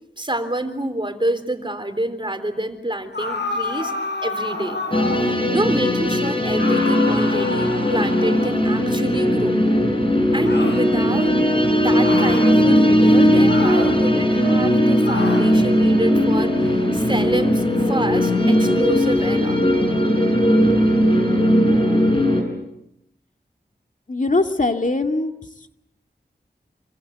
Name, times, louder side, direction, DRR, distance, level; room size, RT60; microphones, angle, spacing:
voice 1, 0.2-3.9 4.2-4.8 5.5-9.6 10.3-11.4 11.7-19.6, right 1 dB, 25° right, 9 dB, 3.7 m, -27 dB
sound 1, 3.1-5.4 6.5-8.8 10.4-10.8 12.0-12.5 13.5-14.0 15.0-15.5, left 2 dB, 75° left, 6.4 m, -28 dB
sound 2, 4.9-22.4, equal, 30° left, 7.4 m, -18 dB
voice 2, 24.1-25.3, left 2 dB, 45° left, 5 dB, 2.2 m, -21 dB
27.5 x 25.5 x 8.2 m, 0.83 s
wide cardioid pair, 60°, 18 cm